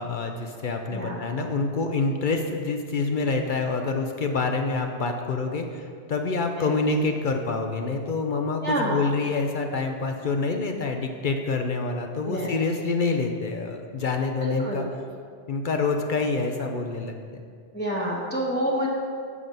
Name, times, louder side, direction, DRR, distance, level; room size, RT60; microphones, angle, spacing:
voice 1, 0.0-14.9 15.5-17.4, left 3 dB, 55° left, 4 dB, 0.7 m, -27 dB
voice 2, 8.6-9.0 12.2-12.5 14.4-14.8 17.7-18.9, equal, 10° left, -5 dB, 1.0 m, -27 dB
7.5 x 6.1 x 5.2 m, 2.1 s
omnidirectional pair, 1.2 m